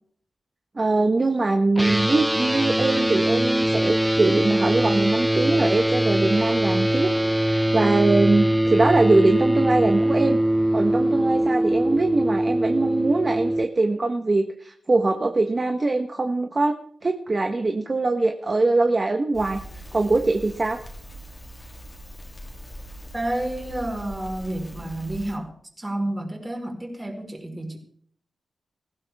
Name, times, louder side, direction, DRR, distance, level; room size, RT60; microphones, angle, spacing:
voice 1, 0.7-7.1 7.4-10.4 10.7-16.7 17.0-19.6 19.9-20.8, right 3 dB, 35° right, 5 dB, 1.3 m, -22 dB
sound 1, 1.8-13.6, right 1 dB, 5° right, 0.8 m, -22 dB
Crackle, 19.3-25.4, equal, 35° left, 2.9 m, -41 dB
voice 2, 23.1-25.5 25.8-27.8, right 1 dB, 20° right, 1 dB, 4.7 m, -30 dB
19.0 x 16.0 x 3.6 m, 0.62 s
cardioid pair, 75°, 0 cm